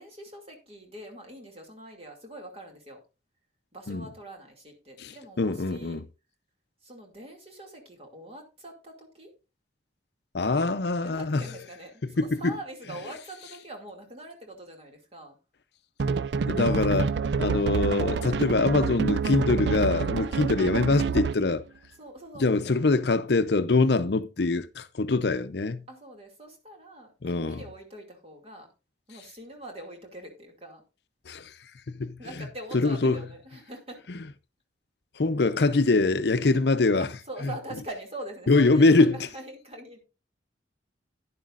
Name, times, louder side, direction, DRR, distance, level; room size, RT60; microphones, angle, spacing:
voice 1, 0.0-3.0 3.7-6.0 6.8-9.3 11.0-15.4 20.1-20.4 22.0-22.8 25.9-28.7 29.1-30.8 32.2-34.1 37.0-40.0, right 1 dB, 35° right, 2.5 m, -43 dB
voice 2, 5.0-6.0 10.3-11.4 12.2-12.5 16.4-21.6 22.4-25.9 27.2-27.6 31.3-31.5 31.9-32.2 32.7-33.2 35.2-37.1 38.5-39.2, left 3 dB, 65° left, 0.6 m, -24 dB
sound 1, 16.0-21.5, right 5 dB, 70° right, 0.4 m, -27 dB
11.5 x 10.5 x 2.5 m
head